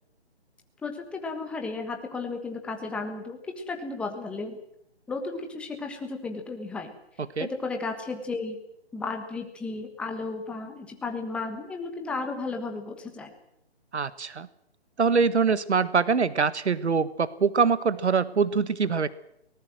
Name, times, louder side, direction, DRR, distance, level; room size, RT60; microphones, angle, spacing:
voice 1, 0.8-4.6 5.1-6.9 7.4-8.6 8.9-13.3, left 3 dB, 5° left, 4 dB, 1.4 m, -34 dB
voice 2, 13.9-14.5 15.0-19.1, right 5 dB, 80° right, 16 dB, 1.4 m, -24 dB
23.5 x 18.5 x 7.7 m, 0.77 s
hypercardioid pair, 160°, 33 cm